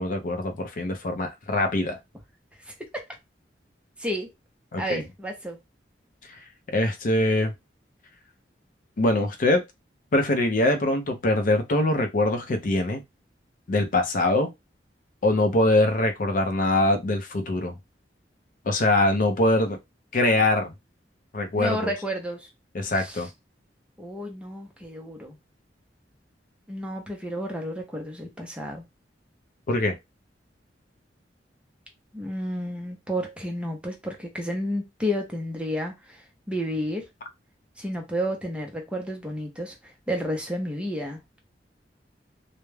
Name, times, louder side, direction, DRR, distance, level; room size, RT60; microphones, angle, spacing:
voice 1, 0.0-2.0 4.7-5.0 6.7-7.5 9.0-9.6 10.1-13.0 13.7-14.5 15.2-17.7 18.7-19.8 20.1-20.7 21.3-21.9 22.7-23.3 29.7-30.0, left 2 dB, 50° left, 0.5 m, -23 dB
voice 2, 2.7-3.0 4.0-4.3 4.8-5.6 21.5-22.5 22.9-23.3 24.0-25.4 26.7-28.8 32.1-36.2 36.5-37.1 37.8-41.2, equal, 5° right, 0.5 m, -31 dB
2.2 x 2.0 x 3.1 m
head